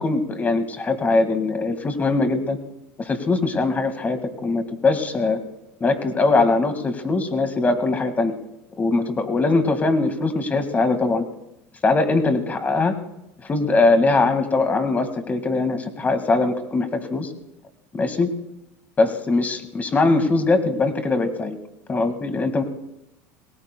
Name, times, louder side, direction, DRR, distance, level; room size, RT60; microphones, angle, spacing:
voice 1, 0.0-2.6 3.0-5.4 5.8-8.3 8.8-11.2 11.8-12.9 13.4-17.3 17.9-18.3 19.0-21.6 21.9-22.6, left 3 dB, 25° left, 7 dB, 1.9 m, -21 dB
27.5 x 19.0 x 2.3 m, 0.88 s
supercardioid pair, 100°, 7 cm